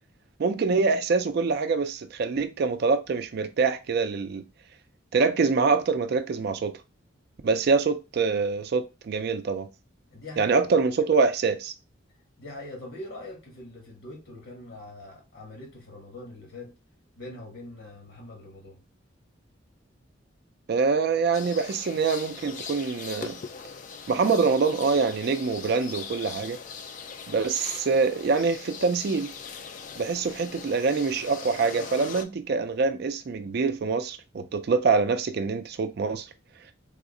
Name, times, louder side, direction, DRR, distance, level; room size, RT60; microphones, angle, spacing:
voice 1, 0.4-4.4 5.1-6.7 7.4-9.7 10.4-11.7 20.7-23.4 24.1-26.6 27.3-29.3 30.0-36.3, right 4 dB, 55° right, 0.4 m, -25 dB
voice 2, 10.1-10.7 12.4-16.7 17.2-18.8, left 2 dB, 85° left, 1.3 m, -43 dB
sound 1, 21.3-32.2, left 6 dB, 40° left, 0.3 m, -41 dB
3.5 x 2.0 x 3.7 m
head